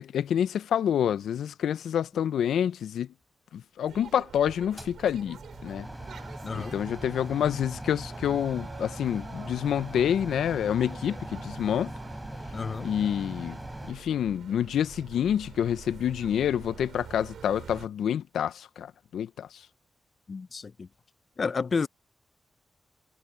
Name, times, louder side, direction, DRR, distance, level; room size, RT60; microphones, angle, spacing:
voice 1, 0.0-3.1 3.5-5.4 5.6-5.9 6.5-11.9 12.8-13.6 13.9-19.5, left 9 dB, 90° left, 0.6 m, -28 dB
sound 1, 3.9-17.9, right 8 dB, 80° right, 4.2 m, -47 dB
sound 2, 4.8-13.9, equal, 5° right, 4.6 m, -40 dB
voice 2, 6.4-6.8 12.5-12.9 20.3-20.9 21.4-21.9, left 5 dB, 60° left, 0.8 m, -31 dB
supercardioid pair, 45°, 0 cm